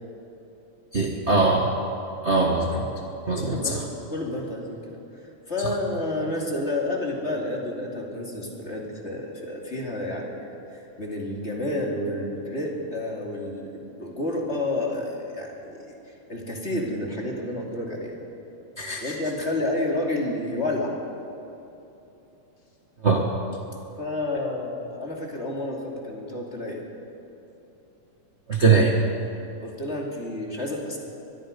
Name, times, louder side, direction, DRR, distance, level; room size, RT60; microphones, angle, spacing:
voice 1, 0.9-1.7 2.2-2.8 3.3-3.7 18.8-19.1 23.0-23.2 28.5-28.9, right 4 dB, 55° right, 0 dB, 0.7 m, -21 dB
voice 2, 3.4-15.8 16.1-18.2 19.0-21.0 24.0-26.8 29.6-31.0, left 1 dB, 20° left, -1 dB, 2.6 m, -30 dB
24.0 x 21.5 x 5.2 m, 3.0 s
omnidirectional pair, 3.8 m